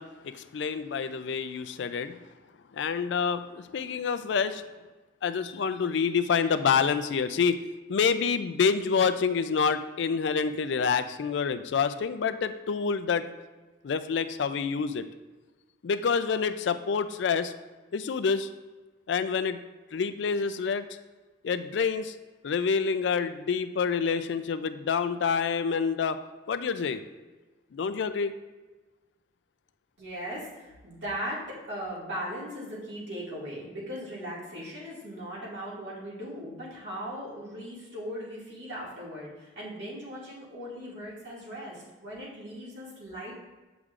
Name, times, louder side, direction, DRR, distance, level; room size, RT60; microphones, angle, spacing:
voice 1, 0.0-2.2 2.7-4.6 5.2-7.6 7.9-13.3 13.8-15.1 15.8-17.5 17.9-18.5 19.1-19.6 19.9-20.9 21.4-22.1 22.4-26.2 26.5-27.0 27.7-28.3, left 6 dB, 65° left, 10 dB, 0.4 m, -27 dB
voice 2, 30.0-43.4, equal, 65° right, -6 dB, 2.2 m, -38 dB
8.1 x 5.9 x 2.5 m, 1.2 s
head